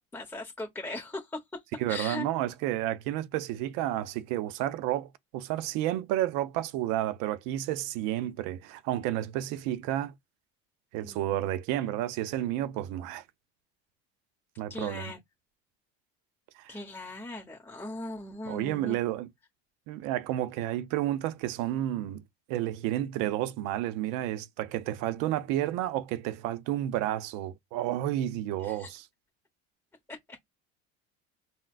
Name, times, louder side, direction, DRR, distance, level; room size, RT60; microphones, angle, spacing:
voice 1, 0.0-1.6 1.9-2.3 11.0-11.3 14.7-15.2 16.7-19.0 28.6-28.9, left 2 dB, 5° left, 1.1 m, -39 dB
voice 2, 1.8-10.1 10.9-13.2 14.6-15.0 16.6-16.8 18.5-19.3 19.9-22.2 22.5-29.1, right 13 dB, 75° right, 0.6 m, -31 dB
3.9 x 2.1 x 2.5 m
supercardioid pair, 110°, 32 cm